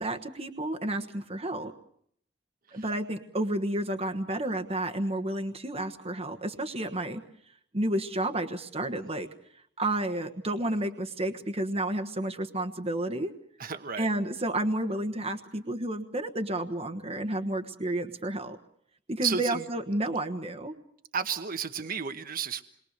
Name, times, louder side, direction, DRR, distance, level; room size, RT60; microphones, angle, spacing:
voice 1, 0.0-1.7 2.7-7.2 7.7-9.3 9.8-13.3 14.0-18.6 19.1-20.8, right 1 dB, 35° right, 5 dB, 1.3 m, -31 dB
voice 2, 13.6-14.1 19.2-19.6 21.1-22.6, right 6 dB, 50° right, 8 dB, 1.2 m, -32 dB
28.5 x 22.5 x 6.6 m, 0.69 s
head